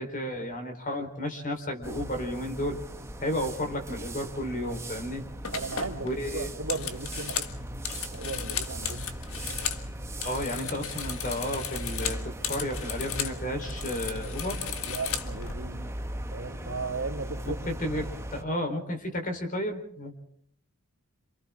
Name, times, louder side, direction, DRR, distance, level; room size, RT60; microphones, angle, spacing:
voice 1, 0.0-2.8 3.2-5.2 6.0-6.5 10.2-14.6 17.4-20.1, left 1 dB, 35° left, 5 dB, 4.1 m, -32 dB
sound 1, 1.8-18.4, right 1 dB, 10° right, 1.3 m, -38 dB
sound 2, 5.4-9.8 10.1-13.4 13.6-15.5, left 8 dB, 65° left, 1.7 m, -35 dB
voice 2, 5.5-7.5 8.1-9.1 14.8-15.8 16.3-17.6, right 3 dB, 65° right, 0 dB, 3.3 m, -36 dB
28.5 x 27.5 x 3.7 m, 0.64 s
head